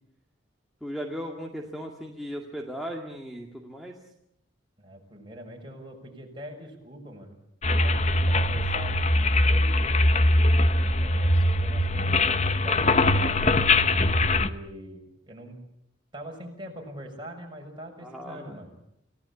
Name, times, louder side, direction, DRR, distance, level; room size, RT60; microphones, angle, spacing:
voice 1, 0.8-4.0 18.0-18.6, equal, ahead, -1 dB, 2.2 m, -37 dB
voice 2, 4.8-7.4 7.7-10.5 11.0-13.6 14.3-15.6 16.1-18.8, right 1 dB, 25° right, 1 dB, 6.3 m, -43 dB
sound 1, 7.6-14.5, left 2 dB, 35° left, 1.0 m, -22 dB
29.0 x 17.5 x 8.4 m, 0.75 s
head